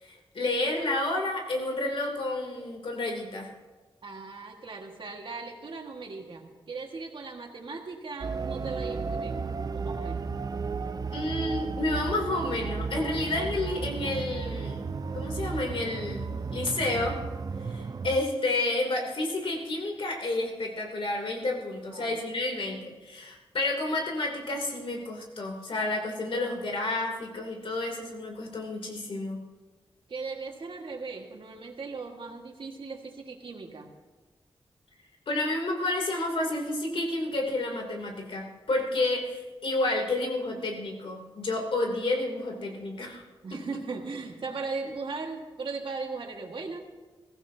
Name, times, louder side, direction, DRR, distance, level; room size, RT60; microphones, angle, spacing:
voice 1, 0.0-3.5 11.1-14.8 15.1-17.2 17.6-29.4 35.3-43.2, left 2 dB, 80° left, 1 dB, 3.0 m, -30 dB
voice 2, 4.0-9.5 9.7-10.3 21.8-22.2 30.1-33.9 43.4-46.8, right 4 dB, 65° right, 2 dB, 1.8 m, -38 dB
sound 1, 8.2-18.2, right 4 dB, 45° right, 0.5 m, -34 dB
22.0 x 15.0 x 2.8 m, 1.2 s
wide cardioid pair, 125°, 9 cm